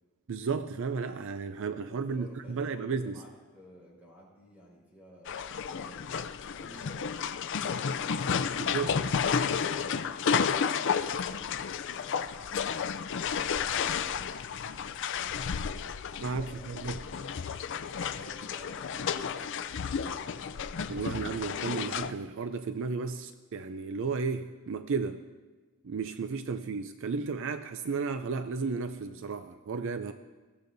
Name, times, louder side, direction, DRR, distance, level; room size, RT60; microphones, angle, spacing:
voice 1, 0.3-3.2 8.7-8.9 16.2-17.0 20.9-25.2 25.8-30.1, right 5 dB, 60° right, 10 dB, 0.4 m, -33 dB
voice 2, 1.9-7.1 7.6-9.1 9.5-10.7 10.9-12.9 13.4-14.5 15.1-15.4 16.3-16.8 18.0-20.3 26.5-26.6, equal, 5° right, -5 dB, 5.1 m, -55 dB
sound 1, 5.3-22.1, left 6 dB, 55° left, 0.4 m, -32 dB
20.5 x 15.0 x 2.7 m, 1.3 s
head